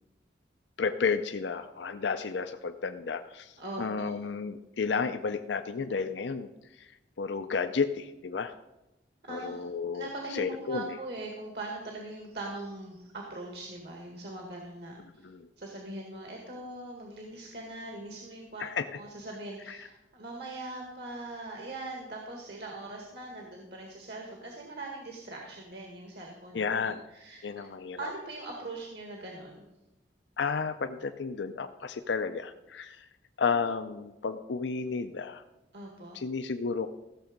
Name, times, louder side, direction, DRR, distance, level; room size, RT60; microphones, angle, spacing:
voice 1, 0.8-6.9 7.2-8.5 9.3-11.0 15.2-15.5 18.6-18.8 19.7-19.9 26.5-27.0 27.4-28.1 30.4-33.1 33.4-35.4 36.1-36.9, left 5 dB, 75° left, 8 dB, 0.5 m, -32 dB
voice 2, 3.6-4.1 9.2-9.6 9.9-15.3 15.6-18.7 19.0-27.7 28.0-29.6 35.7-36.2, right 2 dB, 60° right, 0 dB, 1.9 m, -41 dB
15.5 x 7.0 x 5.2 m, 0.96 s
head